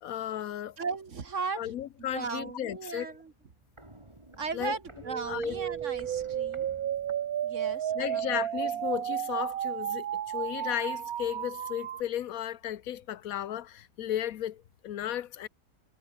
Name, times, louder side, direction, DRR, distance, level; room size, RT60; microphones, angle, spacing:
voice 1, 0.0-0.8 1.6-3.2 4.5-4.8 5.2-5.6 7.9-15.5, left 11 dB, 75° left, 1.2 m, -34 dB
voice 2, 0.8-1.7 2.0-3.3 4.4-6.7 7.4-8.4 8.7-8.8, right 5 dB, 55° right, 2.1 m, -37 dB
Walk footsteps, 3.2-7.9 8.2-8.3, right 1 dB, 20° right, 3.0 m, -52 dB
sound 1, 5.0-12.0, right 10 dB, 85° right, 1.4 m, -33 dB
omnidirectional pair, 1.5 m